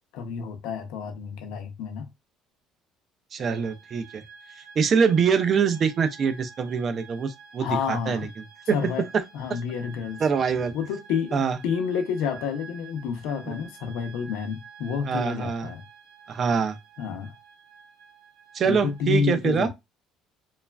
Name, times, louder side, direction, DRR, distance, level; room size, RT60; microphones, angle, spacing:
voice 1, 0.1-2.1 7.6-8.3 8.7-9.1 9.3-10.2 10.7-15.8 17.0-17.3 18.6-19.7, left 6 dB, 70° left, 0.6 m, -29 dB
voice 2, 3.3-4.2 4.8-8.3 8.7-9.2 9.5-9.6 10.2-10.8 11.3-11.6 15.0-15.7 16.3-16.8 18.5-19.7, right 6 dB, 30° right, 0.3 m, -24 dB
sound 1, 3.4-19.0, right 5 dB, 90° right, 0.9 m, -49 dB
3.0 x 2.3 x 2.2 m
cardioid pair, 175°, 0 cm